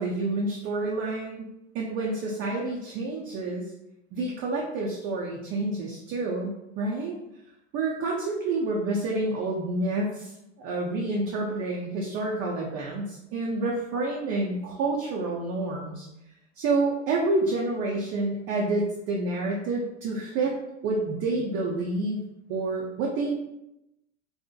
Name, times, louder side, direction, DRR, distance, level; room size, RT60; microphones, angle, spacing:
voice 1, 0.0-1.5 1.7-3.7 4.1-7.2 7.7-10.3 10.6-16.1 16.6-20.5 20.8-23.3, right 2 dB, 40° right, -2 dB, 0.4 m, -28 dB
2.6 x 2.1 x 2.3 m, 0.87 s
hypercardioid pair, 95°, 37 cm